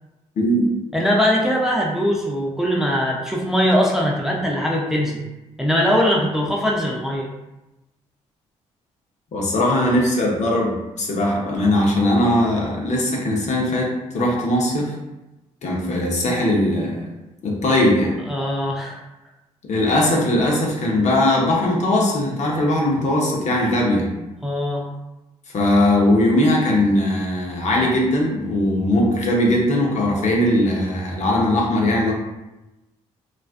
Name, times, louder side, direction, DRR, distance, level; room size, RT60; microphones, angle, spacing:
voice 1, 0.4-0.7 9.3-14.9 15.6-17.0 17.4-18.1 19.6-24.1 25.5-32.1, left 1 dB, 55° left, -2 dB, 0.7 m, -19 dB
voice 2, 0.9-5.2 5.6-7.3 18.3-19.0 24.4-24.9, equal, 5° right, -2 dB, 0.5 m, -21 dB
2.4 x 2.2 x 2.4 m, 0.99 s
supercardioid pair, 60°, 14 cm